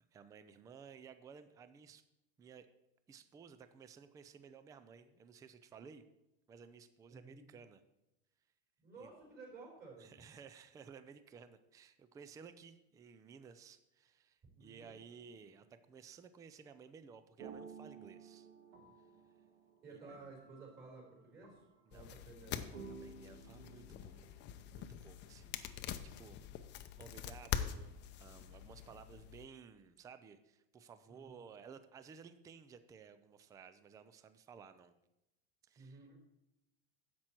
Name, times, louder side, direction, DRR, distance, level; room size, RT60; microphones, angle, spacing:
voice 1, 0.1-2.0 2.4-2.7 3.1-6.0 6.5-7.8 9.0-9.1 10.0-18.5 19.9-20.2 21.9-22.1 22.9-24.3 24.7-26.4 27.0-34.9 35.6-36.0, right 6 dB, 10° right, 11 dB, 0.3 m, -56 dB
voice 2, 7.1-7.5 8.8-10.1 14.5-14.9 19.8-22.7 31.1-31.4 35.8-36.2, right 3 dB, 30° right, -1 dB, 4.2 m, -54 dB
sound 1, 15.4-15.5 17.4-22.3 22.7-25.0, right 5 dB, 70° right, 2.3 m, -55 dB
sound 2, 21.9-29.5, left 9 dB, 35° left, 0.6 m, -45 dB
10.5 x 7.7 x 4.4 m, 0.92 s
supercardioid pair, 145°, 31 cm